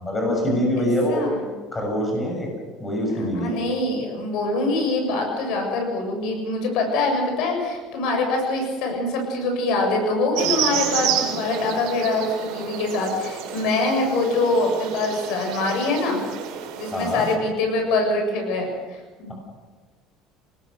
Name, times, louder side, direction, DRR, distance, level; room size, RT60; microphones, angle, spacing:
voice 1, 0.0-1.2 1.7-2.5 2.8-3.6 16.9-17.3, equal, 10° left, -1 dB, 6.9 m, -24 dB
voice 2, 0.8-1.4 3.1-16.2 16.8-19.3, left 2 dB, 65° left, 3 dB, 7.3 m, -24 dB
sound 1, 10.3-17.4, right 9 dB, 65° right, 4.7 m, -29 dB
27.0 x 19.5 x 6.7 m, 1.3 s
cardioid pair, 160°, 0 cm